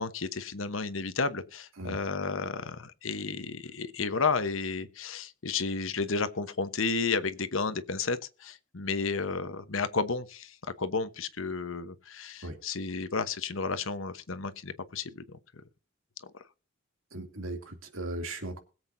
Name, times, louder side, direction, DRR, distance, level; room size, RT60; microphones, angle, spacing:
voice 1, 0.0-15.4, left 4 dB, 70° left, 1.1 m, -32 dB
voice 2, 17.1-18.6, right 1 dB, 80° right, 2.6 m, -37 dB
21.0 x 8.0 x 2.7 m
head